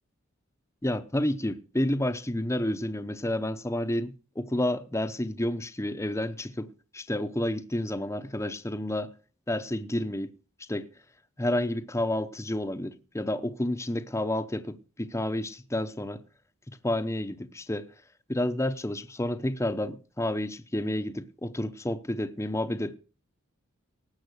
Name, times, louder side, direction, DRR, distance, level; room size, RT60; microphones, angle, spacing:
voice 1, 0.8-9.1 9.5-10.3 10.7-10.9 11.4-16.2 16.7-17.9 18.3-23.0, left 1 dB, 15° left, 0.8 m, -30 dB
18.5 x 7.7 x 6.4 m
head